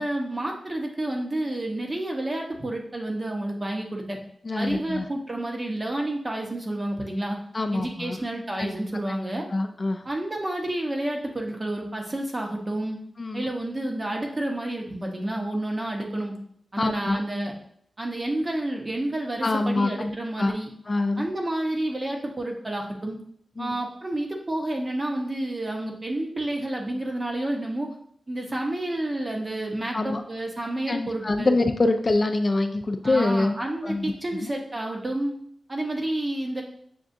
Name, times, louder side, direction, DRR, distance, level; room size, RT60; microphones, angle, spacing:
voice 1, 0.0-4.2 4.5-7.4 7.7-9.5 10.0-13.0 13.3-16.3 16.7-17.5 18.0-20.7 21.2-23.2 23.6-27.9 28.3-31.5 33.0-35.3 35.7-36.6, right 1 dB, 35° right, 1 dB, 0.9 m, -30 dB
voice 2, 4.4-5.1 7.5-8.2 8.6-8.7 9.5-10.0 13.2-13.5 16.8-17.2 19.4-20.5 20.9-21.3 23.6-23.8 29.9-30.2 30.9-33.5 33.8-34.5, left 2 dB, 40° left, 6 dB, 0.3 m, -25 dB
6.7 x 2.4 x 2.6 m, 0.66 s
cardioid pair, 55°, 0 cm